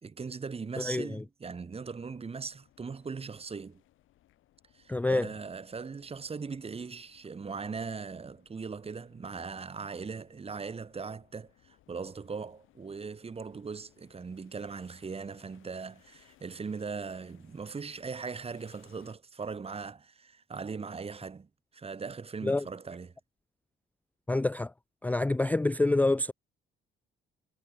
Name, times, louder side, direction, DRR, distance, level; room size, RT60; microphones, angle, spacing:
voice 1, 0.0-3.8 4.7-23.1, right 5 dB, 30° right, 1.4 m, -40 dB
voice 2, 0.8-1.2 4.9-5.3 22.4-22.7 24.3-24.7 25.0-26.3, left 2 dB, 10° left, 0.4 m, -27 dB
sound 1, 1.8-19.1, left 14 dB, 85° left, 5.0 m, -65 dB
cardioid pair, 90°, 20 cm